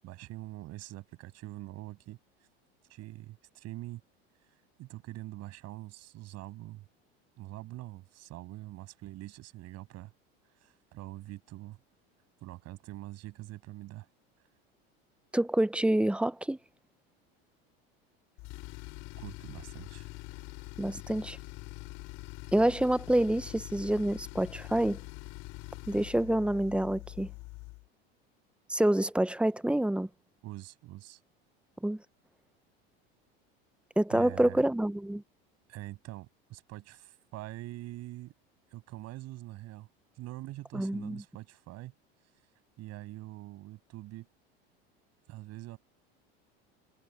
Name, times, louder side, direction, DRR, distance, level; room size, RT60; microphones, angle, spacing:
voice 1, 0.0-2.2 2.9-4.0 4.8-6.8 7.4-10.1 10.6-11.8 12.4-14.1 19.2-20.1 30.4-31.2 34.1-34.6 35.7-38.3 38.7-39.9 40.2-41.9 42.8-44.3 45.3-45.8, right 17 dB, 55° right, 7.8 m, -44 dB
voice 2, 15.3-16.6 20.8-21.4 22.5-25.0 25.9-27.3 28.7-30.1 31.8-32.0 34.0-35.2 40.7-41.2, right 1 dB, 5° right, 0.8 m, -27 dB
Tools, 18.4-27.9, left 24 dB, 65° left, 6.8 m, -44 dB
supercardioid pair, 100°, 31 cm